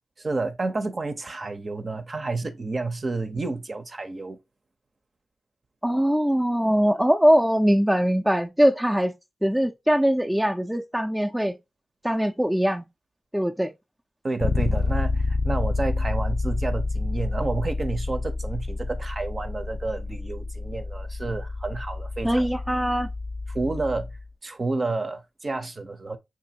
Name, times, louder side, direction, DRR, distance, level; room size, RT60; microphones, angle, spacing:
voice 1, 0.2-4.4 14.2-22.5 23.5-24.1 24.4-26.2, right 3 dB, 45° right, 0.7 m, -30 dB
voice 2, 5.8-9.1 9.4-11.6 12.0-12.8 13.3-13.7 22.2-23.1, equal, 5° right, 0.4 m, -22 dB
Bass guitar, 14.4-24.2, left 3 dB, 50° left, 0.4 m, -28 dB
5.9 x 2.6 x 2.7 m
cardioid pair, 45°, 0 cm